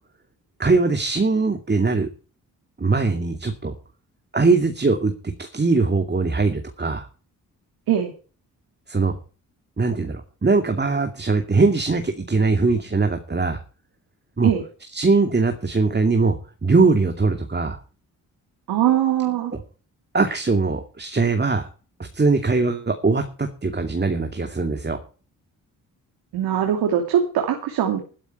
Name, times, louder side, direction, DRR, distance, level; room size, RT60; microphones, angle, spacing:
voice 1, 0.6-2.1 2.8-3.7 4.3-5.1 5.4-7.1 8.9-9.2 9.8-13.6 14.4-14.5 14.9-16.4 16.6-17.8 20.1-21.7 22.1-25.0, right 3 dB, 25° right, 6 dB, 2.5 m, -21 dB
voice 2, 18.7-19.5 26.3-28.0, right 10 dB, 80° right, 4 dB, 2.7 m, -21 dB
12.5 x 12.0 x 4.5 m, 0.37 s
supercardioid pair, 55°, 37 cm